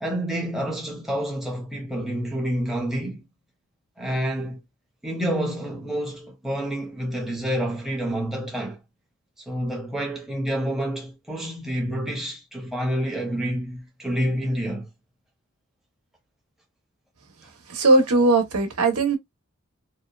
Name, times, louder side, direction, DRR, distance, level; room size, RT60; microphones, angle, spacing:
voice 1, 0.0-3.2 4.0-4.6 5.0-8.8 9.4-14.9, equal, ahead, 0.7 m, -28 dB
voice 2, 17.7-19.2, right 2 dB, 85° right, 1.0 m, -19 dB
2.8 x 2.3 x 2.3 m
head